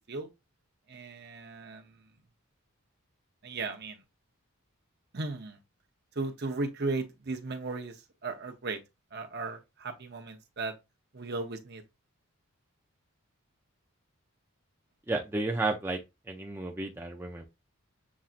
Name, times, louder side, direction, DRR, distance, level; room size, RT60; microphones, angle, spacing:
voice 1, 0.9-2.0 3.4-4.0 5.1-5.6 6.1-8.8 9.1-10.7 11.1-11.8, right 3 dB, 50° right, 0.8 m, -36 dB
voice 2, 15.1-16.0 16.3-17.4, right 2 dB, 10° right, 0.5 m, -32 dB
7.1 x 2.7 x 2.5 m
head